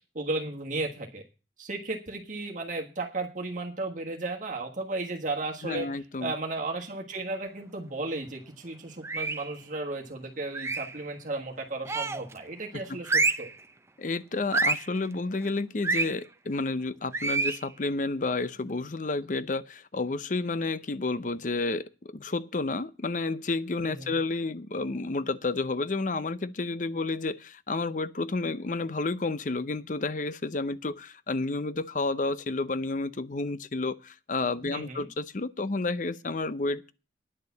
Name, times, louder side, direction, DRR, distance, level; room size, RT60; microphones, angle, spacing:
voice 1, 0.1-1.2 1.6-5.9 6.2-13.5 23.8-24.2 34.6-35.1, right 2 dB, 45° right, 1.6 m, -34 dB
voice 2, 5.6-6.3 12.9-13.0 14.0-36.9, left 3 dB, 45° left, 0.6 m, -31 dB
sound 1, 9.0-9.5 10.5-11.0 11.9-12.3 13.0-13.5 14.5-14.9 15.8-16.1 17.1-17.6, right 3 dB, 15° right, 0.6 m, -27 dB
10.0 x 6.7 x 8.3 m
head